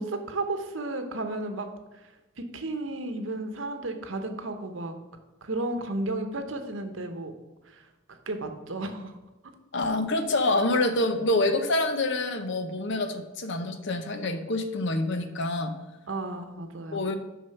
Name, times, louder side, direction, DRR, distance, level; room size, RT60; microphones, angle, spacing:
voice 1, 0.0-1.7 1.9-2.0 2.4-4.9 5.4-7.3 7.6-9.2 9.4-9.5 16.1-17.0, right 2 dB, 65° right, 7 dB, 0.9 m, -33 dB
voice 2, 9.7-15.7 16.9-17.2, left 2 dB, 60° left, 8 dB, 0.8 m, -26 dB
6.4 x 5.7 x 5.8 m, 1.1 s
head